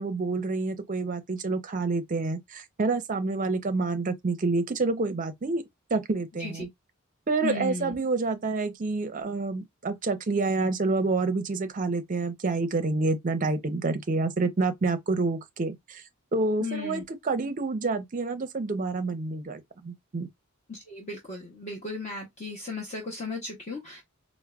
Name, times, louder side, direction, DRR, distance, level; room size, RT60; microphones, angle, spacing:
voice 1, 0.0-5.6 5.9-6.7 7.3-16.0 16.3-20.3, right 3 dB, 40° right, 0.5 m, -28 dB
voice 2, 7.4-8.0 16.6-17.0 20.7-24.0, left 3 dB, 35° left, 0.8 m, -35 dB
4.5 x 2.0 x 2.3 m
head